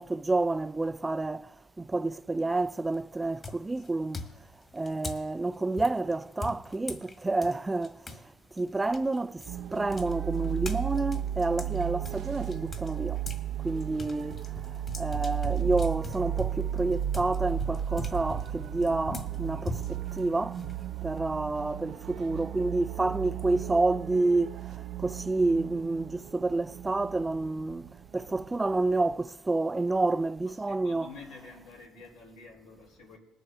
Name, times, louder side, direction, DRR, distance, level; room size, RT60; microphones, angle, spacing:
voice 1, 0.0-1.5 1.8-4.2 4.7-8.0 8.6-9.4 9.7-13.2 13.6-14.4 15.0-20.6 21.0-24.6 25.0-27.9 28.1-31.1, right 2 dB, 15° right, 0.3 m, -29 dB
sound 1, 2.5-2.9 3.4-8.2 8.6-13.5 13.8-21.2, left 3 dB, 35° left, 1.6 m, -42 dB
sound 2, 9.5-29.2, right 10 dB, 65° right, 0.6 m, -35 dB
voice 2, 30.4-33.2, left 4 dB, 90° left, 3.7 m, -49 dB
20.0 x 7.8 x 3.7 m
supercardioid pair, 80°, 0 cm